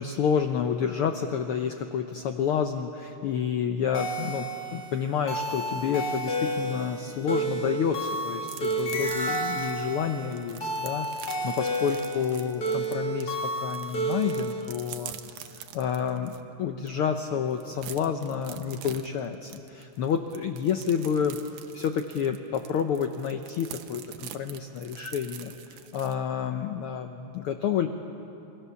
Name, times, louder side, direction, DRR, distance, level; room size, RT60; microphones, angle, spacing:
voice 1, 0.0-21.4 21.7-27.9, left 7 dB, 85° left, 6 dB, 1.2 m, -29 dB
sound 1, 3.9-14.6, right 1 dB, 35° left, 2.1 m, -31 dB
sound 2, 8.4-13.2 13.6-16.4 16.9-17.0 17.3-26.1, right 11 dB, 80° right, 2.3 m, -45 dB
27.0 x 21.5 x 7.0 m, 3.0 s
omnidirectional pair, 3.5 m